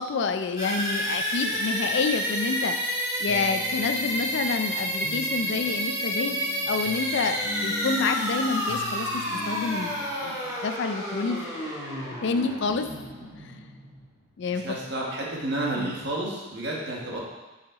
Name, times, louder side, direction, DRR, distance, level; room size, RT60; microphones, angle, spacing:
voice 1, 0.0-2.8 3.2-6.4 6.7-11.4 12.0-12.9 14.4-14.6 15.8-15.9, left 4 dB, 55° left, 8 dB, 0.4 m, -28 dB
sound 1, 0.6-14.3, equal, 15° right, 2.0 m, -30 dB
sound 2, 1.5-1.6 2.1-2.2 2.6-2.7 3.3-10.1, left 2 dB, 80° left, 0.8 m, -41 dB
voice 2, 14.5-17.2, right 1 dB, 55° right, -3 dB, 1.4 m, -31 dB
5.8 x 5.8 x 3.7 m, 1.1 s
head